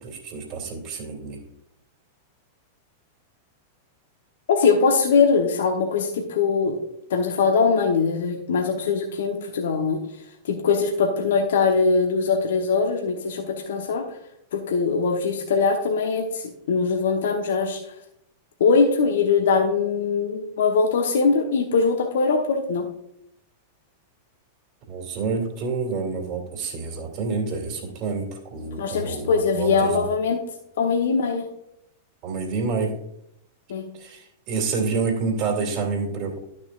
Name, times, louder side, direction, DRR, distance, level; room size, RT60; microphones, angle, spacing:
voice 1, 0.0-1.4 24.9-30.0 32.2-32.9 34.0-36.4, right 4 dB, 45° right, 0 dB, 2.5 m, -28 dB
voice 2, 4.5-6.8 7.1-10.0 10.4-14.2 14.5-17.8 18.6-22.9 28.8-30.4 30.8-31.5 33.7-33.9, left 5 dB, 65° left, 3 dB, 1.0 m, -22 dB
11.5 x 6.6 x 2.4 m, 0.77 s
figure-of-eight pair, 95°, 0 cm